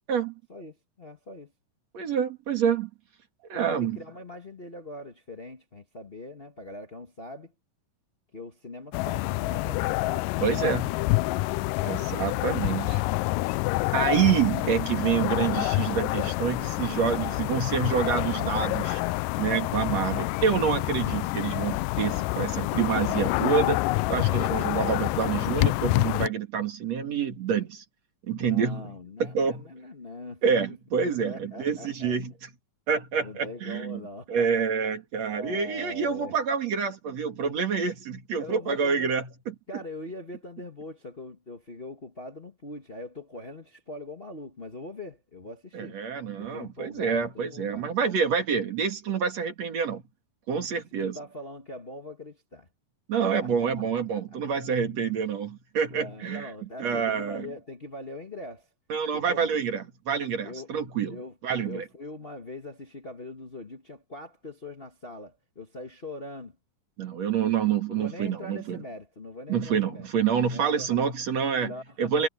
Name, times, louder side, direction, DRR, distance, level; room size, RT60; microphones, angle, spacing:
voice 1, 0.5-1.5 3.5-7.5 8.3-10.8 11.9-12.6 16.9-17.5 19.9-20.4 24.3-24.8 28.4-30.4 30.7-30.8 31.1-32.2 33.2-34.6 35.3-36.3 38.4-39.1 39.7-46.0 46.4-47.9 51.0-52.7 53.4-53.5 53.9-54.0 55.9-58.7 59.1-59.6 60.4-60.7 61.1-61.3 61.6-66.6 67.9-70.1 70.5-71.0 71.6-72.3, left 2 dB, 40° left, 0.7 m, -42 dB
voice 2, 1.9-2.9 3.5-4.0 10.4-10.9 11.8-13.0 13.9-19.0 19.4-23.8 24.1-27.8 28.3-29.7 30.4-32.5 32.9-34.0 34.3-39.3 45.7-50.0 50.5-51.2 53.1-56.5 56.8-57.5 58.9-61.2 61.4-61.8 67.0-68.8 69.5-71.7 72.0-72.3, right 7 dB, 50° right, 3.2 m, -27 dB
sound 1, 8.9-26.3, left 20 dB, 80° left, 2.1 m, -27 dB
omnidirectional pair, 3.9 m